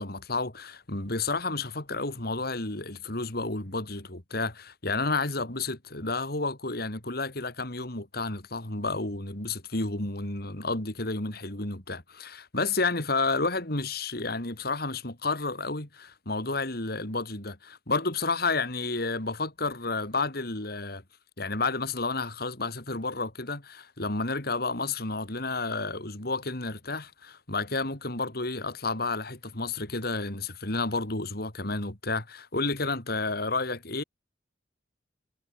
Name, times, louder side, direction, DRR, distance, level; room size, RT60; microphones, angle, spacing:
voice 1, 0.0-21.0 21.4-34.0, left 3 dB, 60° left, 3.6 m, -31 dB
head